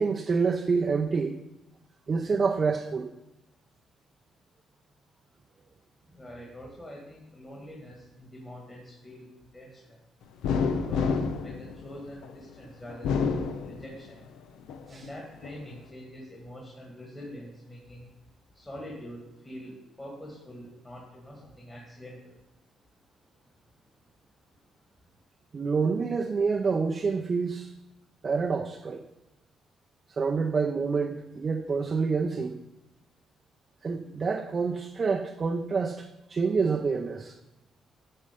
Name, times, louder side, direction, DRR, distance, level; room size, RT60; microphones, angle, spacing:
voice 1, 0.0-1.4 2.1-3.1 14.9-15.1 25.5-27.7 28.2-29.0 30.2-32.6 33.8-37.3, right 5 dB, 40° right, 4 dB, 0.5 m, -27 dB
voice 2, 6.1-10.0 10.7-14.2 14.9-18.1 18.5-22.4, equal, 20° left, -2 dB, 1.8 m, -45 dB
sound 1, 10.4-12.4 12.9-14.2 14.7-15.6, left 5 dB, 90° left, 0.6 m, -29 dB
9.0 x 4.3 x 5.1 m, 0.94 s
cardioid pair, 90°, 0 cm